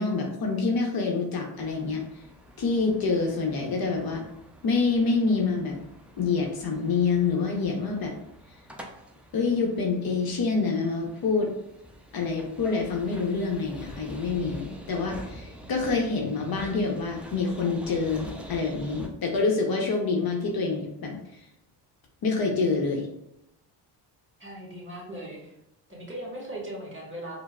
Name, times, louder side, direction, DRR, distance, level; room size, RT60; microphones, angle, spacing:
voice 1, 0.0-2.0 2.6-4.2 4.6-5.8 6.2-8.1 9.3-11.5 12.1-21.2 22.2-23.1, left 4 dB, 50° left, 1 dB, 0.8 m, -26 dB
sound 1, 1.5-19.1, equal, 5° right, 0.4 m, -46 dB
voice 2, 24.4-25.5 25.9-27.4, right 1 dB, 25° right, -2 dB, 1.4 m, -38 dB
4.4 x 2.0 x 2.2 m, 0.82 s
supercardioid pair, 65°, 47 cm